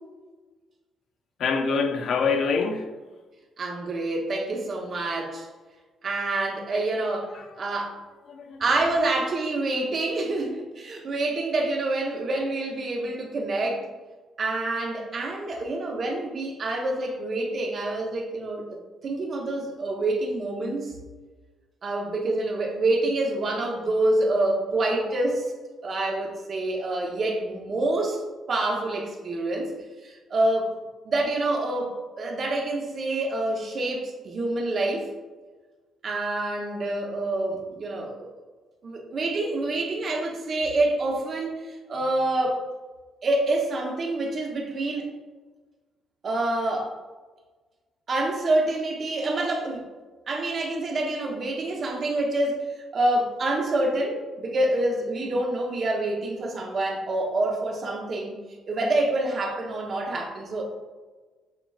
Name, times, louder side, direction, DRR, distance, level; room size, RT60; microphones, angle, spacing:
voice 1, 1.4-2.9 7.3-7.7 8.3-8.6, left 5 dB, 65° left, 0.5 m, -26 dB
voice 2, 3.6-5.5 6.0-8.0 8.6-13.9 14.4-18.8 19.0-20.9 21.8-25.5 25.8-28.2 28.5-29.7 30.0-30.8 31.0-35.1 36.0-38.3 38.8-42.6 43.2-45.1 46.2-46.9 48.1-49.9 50.3-58.4 58.7-60.6, right 2 dB, 50° right, 0.9 m, -27 dB
6.6 x 3.0 x 2.4 m
cardioid pair, 90°, 0 cm